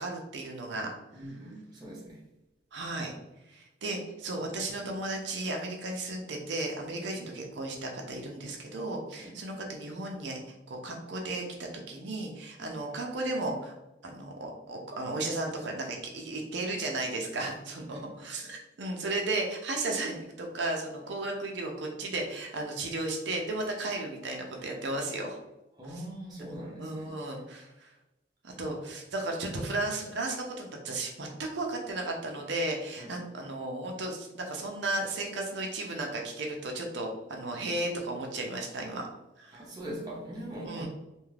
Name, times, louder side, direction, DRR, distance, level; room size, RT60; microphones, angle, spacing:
voice 1, 0.0-1.2 2.7-3.1 3.5-10.4 10.7-13.7 14.0-25.4 26.8-27.9 28.4-39.1 39.4-39.6 40.6-40.9, right 2 dB, 75° right, 1 dB, 0.5 m, -34 dB
voice 2, 1.1-2.2 9.2-9.4 12.6-12.7 17.9-18.1 25.8-27.1 33.0-33.2 39.5-40.9, right 1 dB, 20° right, -4 dB, 0.6 m, -41 dB
2.5 x 2.4 x 3.2 m, 0.94 s
head